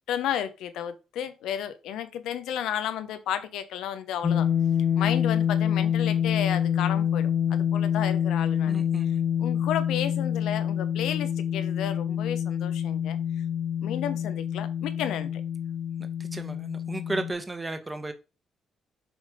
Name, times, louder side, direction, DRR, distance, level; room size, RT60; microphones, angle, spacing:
voice 1, 0.1-4.5 5.0-8.8 9.4-13.2 13.8-15.4, left 10 dB, 85° left, 0.8 m, -32 dB
sound 1, 4.2-17.3, left 9 dB, 40° left, 0.7 m, -26 dB
voice 2, 8.7-9.2 16.3-18.1, right 2 dB, 20° right, 1.1 m, -34 dB
6.2 x 3.3 x 5.0 m
cardioid pair, 90°, 0 cm